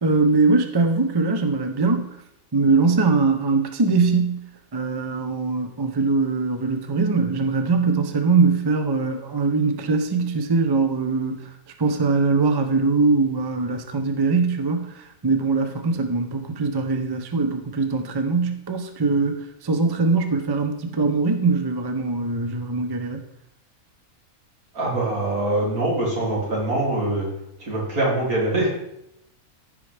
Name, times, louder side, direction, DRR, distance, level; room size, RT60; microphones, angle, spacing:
voice 1, 0.0-2.1 2.5-4.4 4.7-11.5 11.8-23.2, right 4 dB, 25° right, 6 dB, 0.5 m, -22 dB
voice 2, 24.7-27.3 27.6-28.7, right 2 dB, 80° right, -4 dB, 3.3 m, -23 dB
14.5 x 5.5 x 3.4 m, 0.81 s
omnidirectional pair, 1.5 m